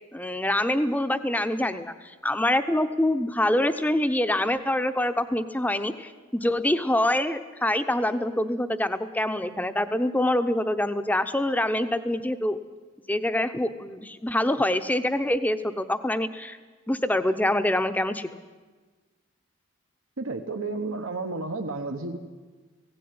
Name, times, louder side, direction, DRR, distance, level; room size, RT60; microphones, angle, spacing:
voice 1, 0.1-12.6 13.1-16.6 16.9-18.3, left 1 dB, 10° left, 10 dB, 0.7 m, -25 dB
voice 2, 20.2-22.2, right 3 dB, 75° right, 5 dB, 1.2 m, -31 dB
18.0 x 16.5 x 9.5 m, 1.4 s
head